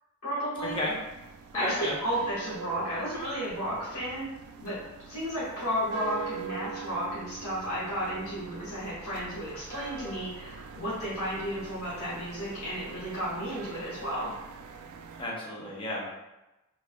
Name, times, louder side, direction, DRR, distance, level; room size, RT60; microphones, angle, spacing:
voice 1, 0.2-0.8 1.5-4.3 4.6-4.8 5.1-14.3, equal, 75° left, -9 dB, 1.5 m, -33 dB
sound 1, 0.6-15.2, right 7 dB, 85° right, 0.3 m, -44 dB
voice 2, 1.6-1.9 15.2-16.2, left 1 dB, 25° left, -4 dB, 0.6 m, -33 dB
3.4 x 3.1 x 2.2 m, 1.0 s
head